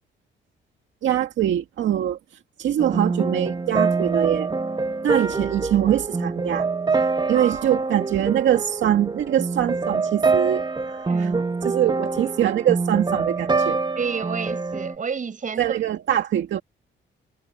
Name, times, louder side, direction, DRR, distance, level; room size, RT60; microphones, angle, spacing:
voice 1, 1.0-2.2 2.6-4.6 5.0-6.7 7.3-11.3 11.6-13.8 15.6-16.6, right 11 dB, 70° right, 2.1 m, -23 dB
sound 1, 2.8-14.9, right 4 dB, 20° right, 1.6 m, -25 dB
voice 2, 7.3-7.9 11.1-11.4 14.0-15.8, right 6 dB, 40° right, 7.1 m, -30 dB
cardioid pair, 90°, 20 cm